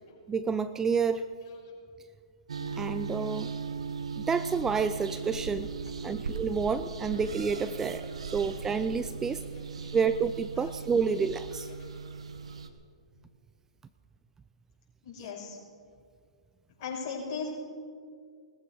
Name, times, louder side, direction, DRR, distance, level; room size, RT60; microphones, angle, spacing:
voice 1, 0.3-1.2 2.8-3.5 4.2-5.7 6.0-9.4 9.9-11.7, right 5 dB, 15° right, 13 dB, 0.4 m, -29 dB
sound 1, 2.5-12.7, right 5 dB, 75° right, 1.2 m, -38 dB
voice 2, 9.3-9.9 10.6-10.7 15.0-15.6 16.8-17.5, left 5 dB, 45° left, -3 dB, 5.5 m, -38 dB
19.5 x 14.5 x 4.7 m, 2.2 s
hypercardioid pair, 120°, 3 cm